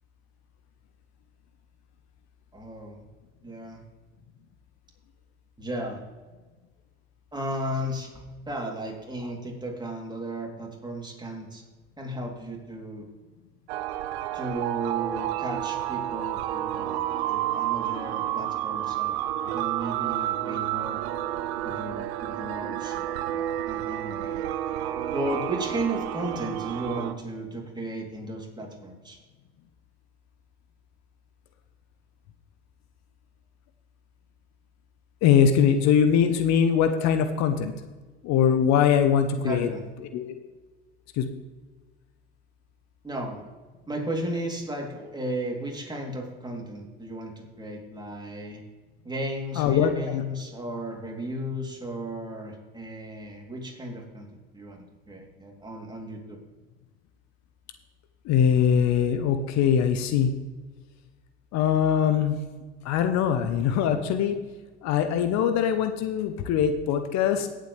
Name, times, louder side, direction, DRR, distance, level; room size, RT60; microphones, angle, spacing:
voice 1, 2.5-3.0 3.4-3.8 5.6-6.0 7.3-11.6 12.0-13.1 14.3-19.1 19.4-21.0 21.6-24.5 25.1-29.2 39.3-39.8 43.0-43.5 43.9-48.6 49.0-54.3 54.5-54.8 55.1-56.4, right 1 dB, 15° right, 0 dB, 3.2 m, -34 dB
sound 1, 13.7-27.1, right 12 dB, 75° right, 0.8 m, -30 dB
voice 2, 35.2-37.7 38.2-39.7 40.1-40.3 41.2-41.3 49.6-50.2 58.2-60.3 61.5-62.4 62.8-64.4 64.8-67.5, left 8 dB, 55° left, 9 dB, 1.0 m, -22 dB
17.5 x 7.8 x 3.4 m, 1.3 s
hypercardioid pair, 70°, 32 cm